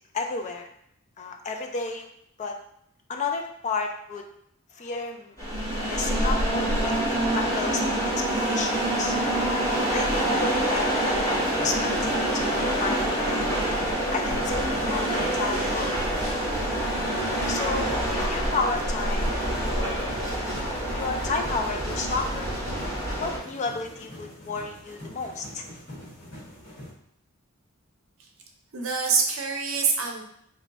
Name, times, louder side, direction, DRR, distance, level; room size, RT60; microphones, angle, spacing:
voice 1, 0.1-0.7 1.2-2.1 2.4-2.6 3.1-4.2 4.7-5.4 5.8-9.2 9.9-11.3 11.6-13.4 14.1-16.5 17.5-19.8 20.8-22.5 23.2-25.6, left 4 dB, 30° left, 4 dB, 0.3 m, -32 dB
sound 1, 5.4-23.4, right 1 dB, 15° left, 1.1 m, -26 dB
sound 2, 11.3-26.9, equal, 60° left, 1.5 m, -45 dB
voice 2, 28.7-30.2, right 5 dB, 65° right, 2 dB, 0.6 m, -25 dB
3.2 x 2.2 x 3.9 m, 0.73 s
head